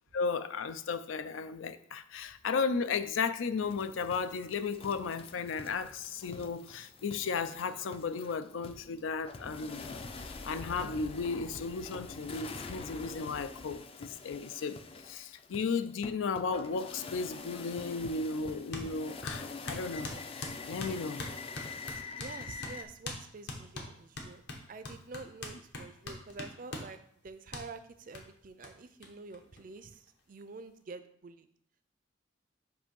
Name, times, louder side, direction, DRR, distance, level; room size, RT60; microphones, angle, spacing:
voice 1, 0.1-9.8 10.2-21.2, left 5 dB, 90° left, 0.4 m, -35 dB
sound 1, 3.6-22.8, left 4 dB, 30° left, 0.4 m, -45 dB
sound 2, 18.7-18.9 19.3-22.4 22.6-22.8 23.0-23.2 23.5-26.9 27.5-27.7 28.1-28.2 28.6-28.7 29.0-29.1 29.3-30.1, left 2 dB, 60° left, 1.0 m, -41 dB
voice 2, 22.2-27.0 27.2-31.5, right 3 dB, 45° right, 0.4 m, -48 dB
7.4 x 2.7 x 5.3 m
head